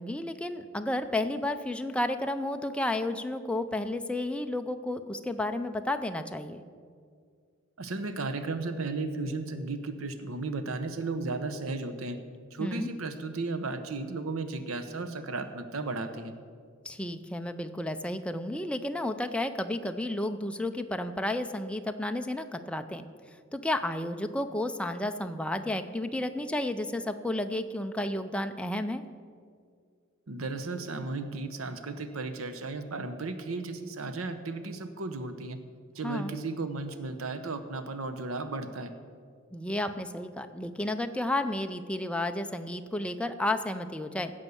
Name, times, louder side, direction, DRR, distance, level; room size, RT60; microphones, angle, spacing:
voice 1, 0.0-6.6 12.6-12.9 16.8-23.1 23.5-29.0 36.0-36.3 39.5-44.3, left 1 dB, 5° left, 7 dB, 0.5 m, -32 dB
voice 2, 7.8-12.2 12.5-16.3 30.3-35.6 35.9-38.9, right 3 dB, 80° right, 9 dB, 0.9 m, -34 dB
16.0 x 5.4 x 7.0 m, 2.1 s
head